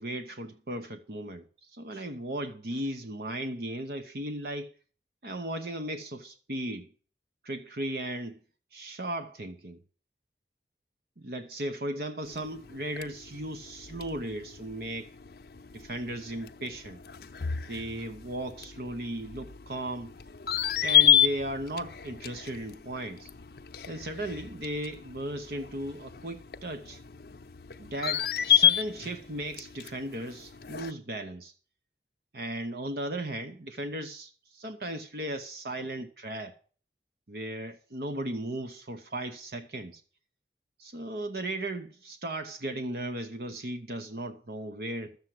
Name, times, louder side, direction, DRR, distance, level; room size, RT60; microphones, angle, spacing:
voice 1, 0.0-4.7 5.2-6.9 7.4-8.4 8.7-9.8 11.2-15.1 15.7-17.0 17.7-20.1 20.8-23.3 23.9-27.0 27.8-31.5 32.3-36.6 37.3-40.0 40.8-45.2, right 1 dB, 60° right, 0.9 m, -36 dB
sound 1, 12.3-30.9, left 11 dB, 60° left, 0.6 m, -31 dB
13.0 x 7.3 x 7.6 m
head